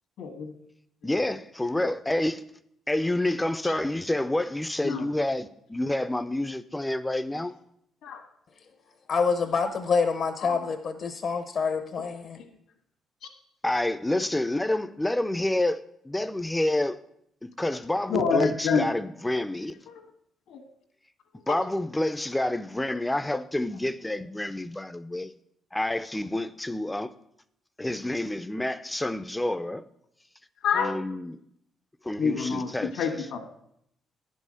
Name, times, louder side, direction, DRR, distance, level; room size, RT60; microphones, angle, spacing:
voice 1, 0.2-0.5 3.6-3.7 4.8-5.1 7.3-7.4 8.0-8.2 10.4-10.6 18.1-18.9 20.5-20.6 21.5-21.6 29.6-29.7 30.6-30.9 32.2-33.4, left 5 dB, 80° left, 1.5 m, -27 dB
voice 2, 1.0-2.4 2.9-7.5 13.6-15.8 16.0-17.0 17.4-19.7 21.5-25.3 25.7-27.1 27.8-29.8 30.7-31.4 32.0-33.2, left 1 dB, 10° left, 0.5 m, -28 dB
voice 3, 9.1-12.4, left 5 dB, 60° left, 0.7 m, -27 dB
10.5 x 5.5 x 6.3 m
cardioid pair, 90°, 0 cm